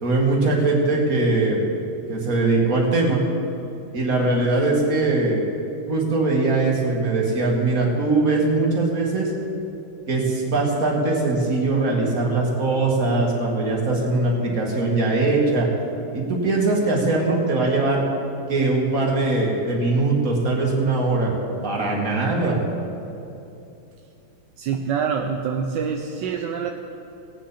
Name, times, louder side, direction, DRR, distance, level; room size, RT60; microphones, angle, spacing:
voice 1, 0.0-1.6 2.1-3.2 3.9-5.4 5.9-9.3 10.1-15.7 16.1-18.0 18.5-21.3 21.6-22.6, right 3 dB, 40° right, -2 dB, 2.2 m, -21 dB
voice 2, 24.6-26.7, right 6 dB, 70° right, 2 dB, 1.1 m, -25 dB
18.5 x 8.9 x 4.2 m, 2.7 s
omnidirectional pair, 2.4 m